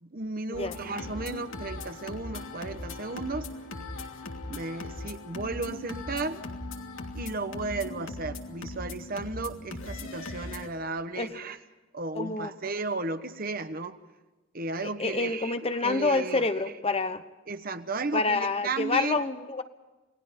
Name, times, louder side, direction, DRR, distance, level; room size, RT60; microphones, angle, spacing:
voice 1, 0.0-3.5 4.5-6.4 7.1-11.6 11.9-14.0 14.5-16.5 17.5-19.2, right 3 dB, 45° right, 9 dB, 1.2 m, -34 dB
sound 1, 0.5-10.7, left 2 dB, 90° left, 2.8 m, -39 dB
voice 2, 12.1-12.5 14.8-17.2 18.1-19.6, left 3 dB, 30° left, 10 dB, 1.0 m, -28 dB
29.0 x 19.5 x 5.3 m, 1.1 s
head